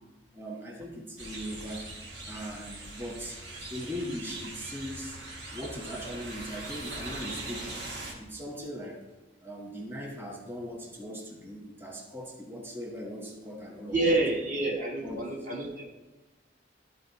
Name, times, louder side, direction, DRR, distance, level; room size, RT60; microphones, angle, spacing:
voice 1, 0.3-1.9 2.3-3.4 3.7-5.2 5.5-7.8 8.2-9.0 9.4-14.2 15.0-15.2, equal, 15° right, -1 dB, 1.2 m, -39 dB
sound 1, 1.2-8.1, right 2 dB, 70° right, 1.6 m, -41 dB
voice 2, 13.9-15.8, right 2 dB, 50° right, -1 dB, 1.2 m, -28 dB
11.5 x 4.2 x 4.1 m, 1.2 s
head